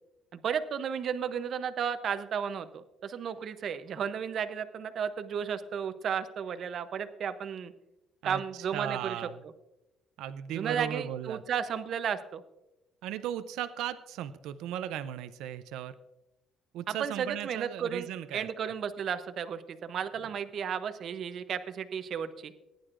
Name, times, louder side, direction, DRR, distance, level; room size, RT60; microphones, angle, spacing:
voice 1, 0.3-7.7 8.2-9.2 10.5-12.4 16.9-22.5, right 7 dB, 45° right, 11 dB, 0.7 m, -33 dB
voice 2, 8.2-9.4 10.2-11.4 13.0-15.9 16.7-18.7 20.2-20.3, right 11 dB, 90° right, 12 dB, 0.5 m, -37 dB
19.0 x 10.5 x 2.5 m, 0.93 s
cardioid pair, 155°, 0 cm